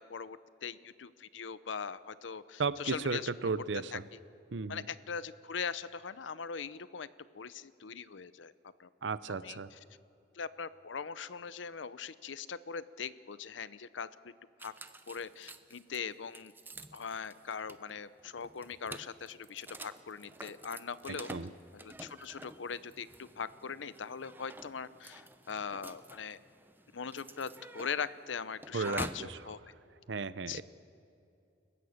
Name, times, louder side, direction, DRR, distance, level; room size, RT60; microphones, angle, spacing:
voice 1, 0.0-3.3 3.9-4.2 4.7-7.1 7.3-8.9 9.3-9.8 10.3-14.1 14.6-14.7 15.1-16.5 16.9-21.3 21.7-26.4 26.9-29.7 30.5-30.6, left 6 dB, 85° left, 16 dB, 0.7 m, -41 dB
voice 2, 2.6-4.0 4.5-4.8 9.0-9.7 21.1-21.5 28.7-29.0 30.1-30.6, right 4 dB, 75° right, 16 dB, 0.7 m, -34 dB
sound 1, 14.6-29.3, right 2 dB, 10° right, 0.7 m, -49 dB
29.0 x 16.0 x 6.5 m, 2.6 s
head